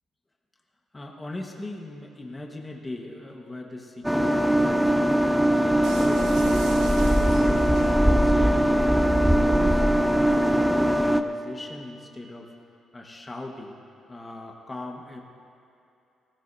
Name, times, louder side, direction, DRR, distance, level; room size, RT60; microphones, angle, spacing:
voice 1, 0.9-5.4 5.8-7.8 8.1-9.8 10.2-12.5 12.9-13.8 14.1-15.2, left 2 dB, 20° left, 1 dB, 1.4 m, -39 dB
sound 1, 4.0-11.2, right 1 dB, 5° right, 0.5 m, -21 dB
sound 2, 5.8-8.3, right 4 dB, 85° right, 1.2 m, -40 dB
16.5 x 15.5 x 2.7 m, 2.7 s
cardioid pair, 90°, 0 cm